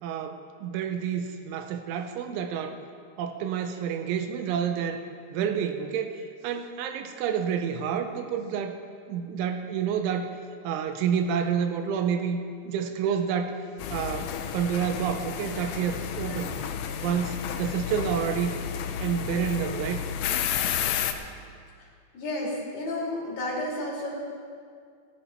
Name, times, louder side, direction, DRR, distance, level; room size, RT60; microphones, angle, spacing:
voice 1, 0.0-2.8 3.2-5.0 5.3-6.2 6.4-8.8 9.1-10.3 10.6-12.4 12.6-13.6 13.9-16.6 17.0-18.5 19.0-20.1, right 7 dB, 80° right, 7 dB, 3.0 m, -29 dB
sound 1, 13.8-21.1, left 8 dB, 90° left, 2.4 m, -31 dB
voice 2, 22.1-24.1, left 1 dB, 60° left, -5 dB, 4.4 m, -31 dB
18.0 x 11.0 x 4.4 m, 2.2 s
omnidirectional pair, 5.7 m